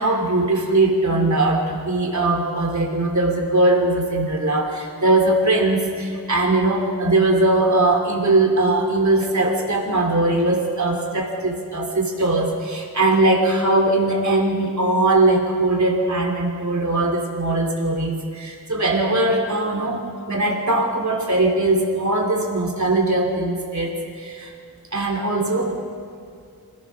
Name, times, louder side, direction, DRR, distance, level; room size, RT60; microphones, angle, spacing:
voice 1, 0.0-24.5 24.9-25.8, right 2 dB, 55° right, 0 dB, 3.1 m, -20 dB
26.5 x 17.0 x 6.3 m, 2.3 s
wide cardioid pair, 75°, 35 cm